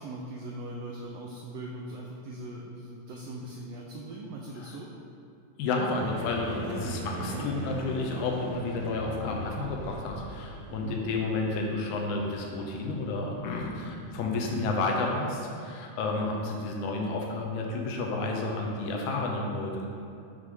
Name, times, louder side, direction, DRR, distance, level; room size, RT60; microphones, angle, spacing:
voice 1, 0.0-4.9 6.6-7.0 7.3-7.5 10.7-11.0, right 1 dB, 85° right, -2 dB, 1.4 m, -40 dB
voice 2, 5.6-19.9, left 3 dB, 85° left, 0 dB, 2.2 m, -31 dB
sound 1, 5.9-14.5, equal, 50° right, 1.3 m, -41 dB
6.3 x 3.2 x 5.3 m, 2.6 s
omnidirectional pair, 3.4 m